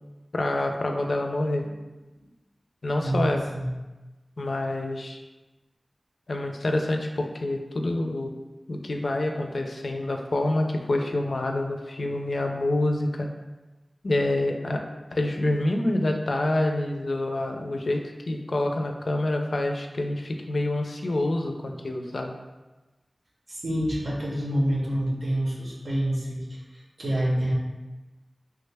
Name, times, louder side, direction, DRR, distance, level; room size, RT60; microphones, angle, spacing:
voice 1, 0.3-1.7 2.8-3.5 4.4-5.2 6.3-8.3 8.7-13.3 14.0-14.8 15.1-18.0 18.3-22.3, left 1 dB, 75° left, 3 dB, 0.3 m, -27 dB
voice 2, 3.0-3.7 23.5-26.4 27.0-27.5, right 1 dB, 75° right, -4 dB, 0.8 m, -27 dB
3.3 x 2.1 x 3.3 m, 1.1 s
wide cardioid pair, 50°, 0 cm